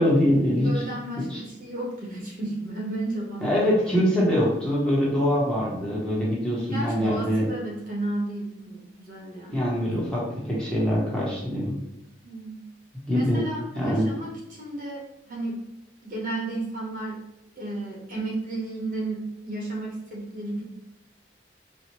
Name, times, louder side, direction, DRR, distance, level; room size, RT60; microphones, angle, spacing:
voice 1, 0.0-0.8 1.2-1.4 3.4-7.4 9.5-11.7 13.1-13.4 13.8-14.1, equal, 5° left, -7 dB, 0.8 m, -23 dB
voice 2, 0.6-3.7 6.7-9.7 10.2-10.3 12.2-12.6 13.1-15.6 16.0-17.2 17.6-20.6, right 2 dB, 45° right, -2 dB, 0.8 m, -33 dB
4.3 x 2.0 x 2.9 m, 0.85 s
head